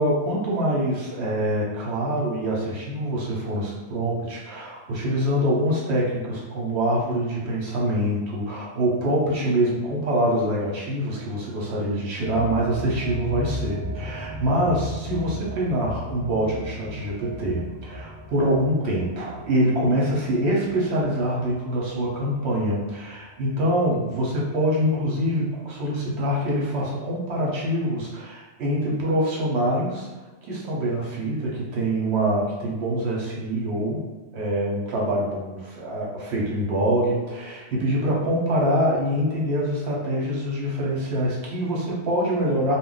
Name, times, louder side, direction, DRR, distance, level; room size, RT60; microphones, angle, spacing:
voice 1, 0.0-30.1 30.4-34.0 34.3-42.8, equal, 70° right, -4 dB, 1.1 m, -25 dB
sound 1, 12.2-23.1 23.5-23.6 25.4-25.5, equal, 45° right, 1.0 m, -36 dB
2.4 x 2.1 x 3.8 m, 1.2 s
omnidirectional pair, 1.2 m